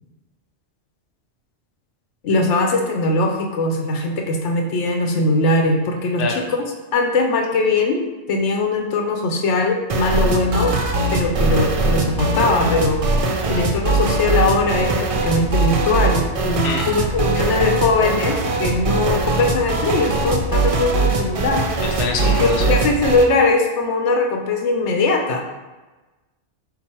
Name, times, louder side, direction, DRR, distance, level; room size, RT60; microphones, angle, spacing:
voice 1, 2.2-6.6 6.9-10.8 11.1-13.0 13.5-21.6 22.2-25.4, left 3 dB, 85° left, 2 dB, 1.0 m, -20 dB
sound 1, 9.9-23.3, right 3 dB, 55° right, 0.4 m, -21 dB
voice 2, 21.8-22.7, left 4 dB, 55° left, 1 dB, 0.8 m, -25 dB
5.9 x 2.0 x 4.3 m, 1.2 s
omnidirectional pair, 1.1 m